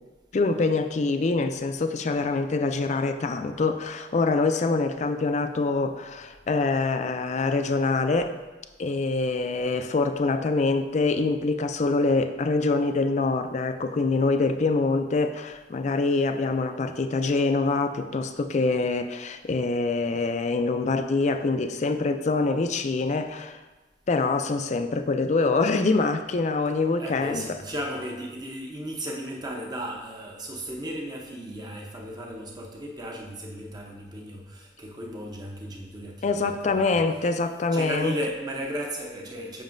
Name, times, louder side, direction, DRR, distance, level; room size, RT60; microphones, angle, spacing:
voice 1, 0.3-8.3 8.8-23.6 24.1-27.5 36.2-38.1, left 3 dB, 40° left, 8 dB, 0.4 m, -25 dB
voice 2, 27.0-37.0 37.7-39.6, equal, 20° right, 0 dB, 0.8 m, -35 dB
7.2 x 5.9 x 2.6 m, 1.2 s
head